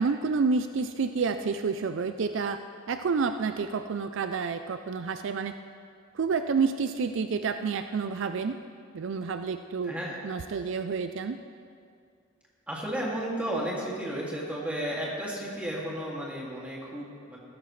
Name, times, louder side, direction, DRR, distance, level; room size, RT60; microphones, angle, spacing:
voice 1, 0.0-2.6 2.9-5.5 6.1-8.5 8.9-9.9 10.2-11.4, right 5 dB, 65° right, 8 dB, 0.4 m, -29 dB
voice 2, 9.8-10.2 12.7-17.4, right 1 dB, 5° right, -5 dB, 2.3 m, -33 dB
15.5 x 14.0 x 3.2 m, 2.2 s
head